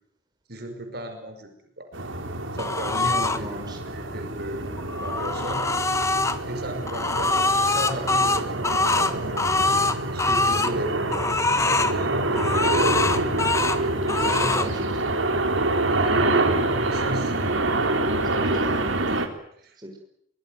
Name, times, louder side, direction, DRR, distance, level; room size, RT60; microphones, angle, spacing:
voice 1, 0.5-1.9 2.5-5.7 6.5-7.3 7.7-12.6 14.2-14.7 15.0-17.4 19.6-19.8, right 1 dB, 55° right, 6 dB, 5.3 m, -36 dB
sound 1, 1.9-19.3, right 2 dB, 85° right, 3.7 m, -26 dB
sound 2, 2.6-3.4 4.8-6.4 6.9-10.7 11.1-11.9 12.3-13.8 14.1-14.7, left 3 dB, 15° left, 1.3 m, -24 dB
voice 2, 3.3-3.8 13.8-14.9 18.2-18.7 19.8-20.0, right 1 dB, 20° right, 2 dB, 5.6 m, -37 dB
24.0 x 22.0 x 9.3 m, 0.69 s
head